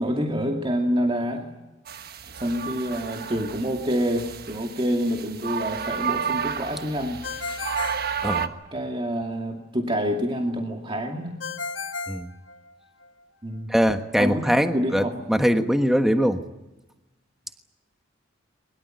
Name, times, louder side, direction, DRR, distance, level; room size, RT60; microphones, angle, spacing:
voice 1, 0.0-1.5 2.0-2.1 2.3-7.2 8.7-11.4 13.4-13.7 14.2-15.2, equal, 30° right, 2 dB, 2.3 m, -27 dB
sound 1, 1.9-8.5, right 7 dB, 55° right, 1.3 m, -32 dB
Ringtone, 7.2-8.9 11.4-13.1, left 4 dB, 75° left, 1.7 m, -34 dB
voice 2, 8.2-8.5 12.1-12.3 13.7-16.4, equal, ahead, 7 dB, 1.3 m, -22 dB
22.0 x 22.0 x 9.2 m, 1.0 s
head